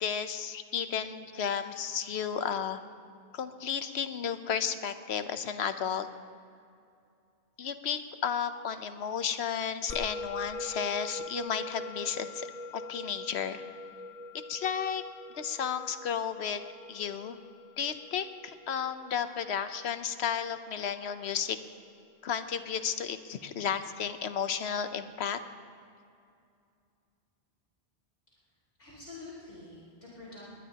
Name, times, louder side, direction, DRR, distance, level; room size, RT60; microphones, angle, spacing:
voice 1, 0.0-2.8 3.3-6.1 7.6-12.5 12.7-13.6 14.5-15.0 15.3-16.6 16.9-17.4 17.8-21.6 22.2-25.4, left 7 dB, 90° left, 10 dB, 1.1 m, -33 dB
Musical instrument, 9.9-20.5, left 2 dB, 35° left, 0.9 m, -43 dB
voice 2, 28.8-30.5, left 3 dB, 60° left, -9 dB, 4.5 m, -47 dB
21.0 x 19.5 x 2.9 m, 2.4 s
omnidirectional pair, 1.1 m